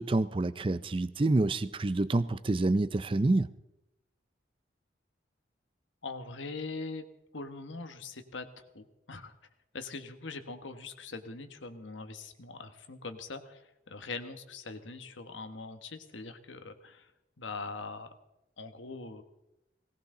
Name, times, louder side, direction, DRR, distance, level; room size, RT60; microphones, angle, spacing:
voice 1, 0.0-3.5, right 2 dB, 30° right, 15 dB, 0.4 m, -27 dB
voice 2, 6.0-7.0 7.3-9.3 9.7-17.1 17.4-18.1 18.6-19.2, left 3 dB, 90° left, 8 dB, 1.3 m, -42 dB
18.5 x 17.5 x 3.8 m, 0.91 s
head